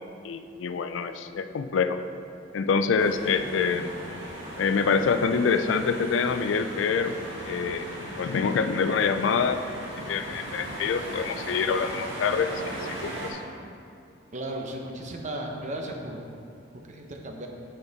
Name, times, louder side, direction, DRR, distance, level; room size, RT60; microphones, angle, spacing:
voice 1, 0.2-2.0 2.5-4.0 4.6-7.1 7.5-7.9 8.2-9.6 10.1-12.5 13.0-13.4, left 5 dB, 75° left, 10 dB, 0.4 m, -26 dB
sound 1, 3.0-13.3, right 1 dB, 75° right, 1.8 m, -37 dB
voice 2, 14.3-16.2 16.7-17.5, right 1 dB, 40° right, 2 dB, 0.7 m, -35 dB
8.3 x 5.2 x 4.0 m, 2.5 s
head